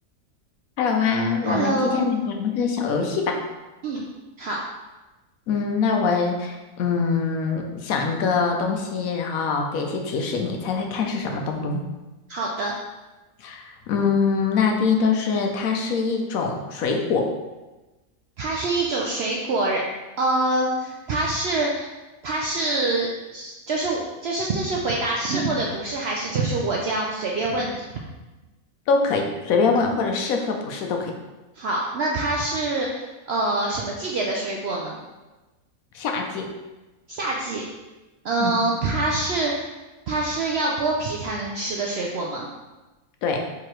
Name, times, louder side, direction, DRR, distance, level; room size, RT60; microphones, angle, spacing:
voice 1, 0.8-3.4 5.5-11.8 13.4-17.3 28.9-31.1 35.9-36.5 38.4-38.6 43.2-43.4, left 5 dB, 75° left, 3 dB, 1.0 m, -24 dB
voice 2, 1.4-2.1 3.8-4.1 4.4-4.6 12.3-12.8 18.4-19.8 20.2-21.9 22.2-27.8 31.6-35.0 37.1-37.6 38.2-39.7 40.1-42.5, right 2 dB, 70° right, -2 dB, 0.6 m, -25 dB
4.7 x 3.7 x 3.0 m, 1.1 s
omnidirectional pair, 1.6 m